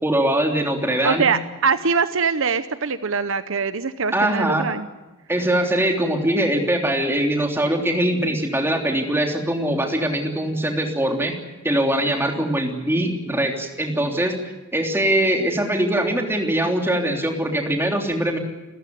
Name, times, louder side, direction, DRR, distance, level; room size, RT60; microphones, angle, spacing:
voice 1, 0.0-1.3 4.1-4.7 5.3-11.4 11.6-14.3 14.7-18.4, right 1 dB, 10° right, 3 dB, 3.3 m, -22 dB
voice 2, 1.0-4.9, right 5 dB, 65° right, 12 dB, 0.9 m, -22 dB
29.0 x 14.5 x 9.5 m, 1.1 s
head